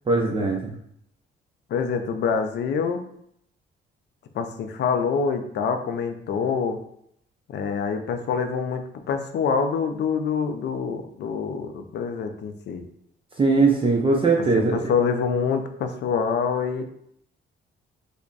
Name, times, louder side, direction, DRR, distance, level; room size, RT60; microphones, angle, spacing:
voice 1, 0.1-0.7 13.4-14.8, right 3 dB, 25° right, -1 dB, 0.5 m, -20 dB
voice 2, 1.7-3.0 4.3-6.8 7.5-12.8 14.6-16.8, left 6 dB, 60° left, 6 dB, 0.5 m, -26 dB
3.3 x 2.1 x 3.8 m, 0.71 s
cardioid pair, 90°, 20 cm